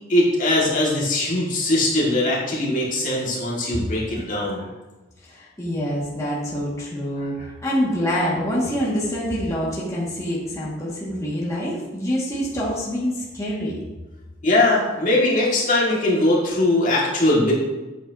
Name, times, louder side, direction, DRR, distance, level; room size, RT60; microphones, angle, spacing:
voice 1, 0.1-4.7 14.4-17.5, left 1 dB, 45° left, -5 dB, 2.1 m, -20 dB
voice 2, 5.2-7.4 7.6-13.8, equal, 15° left, -7 dB, 2.0 m, -26 dB
8.8 x 8.1 x 2.8 m, 1.1 s
head